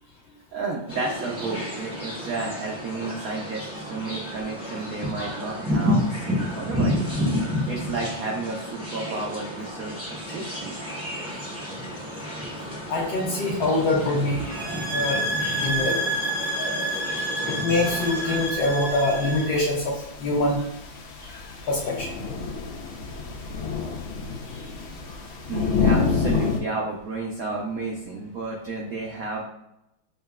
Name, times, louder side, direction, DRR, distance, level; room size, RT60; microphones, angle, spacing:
voice 1, 0.5-7.0 7.6-10.8 24.4-24.7 25.5-29.4, right 3 dB, 80° right, -2 dB, 0.7 m, -32 dB
sound 1, 0.9-18.4, equal, 5° right, 0.4 m, -31 dB
voice 2, 12.9-14.4 14.9-15.2 15.6-16.1 17.5-20.7 21.2-22.4, left 2 dB, 65° left, -3 dB, 1.1 m, -25 dB
sound 2, 14.5-19.6, right 1 dB, 35° left, 0.8 m, -29 dB
sound 3, 17.7-26.6, left 5 dB, 80° left, 1.5 m, -29 dB
6.4 x 2.2 x 2.3 m, 0.83 s
omnidirectional pair, 2.2 m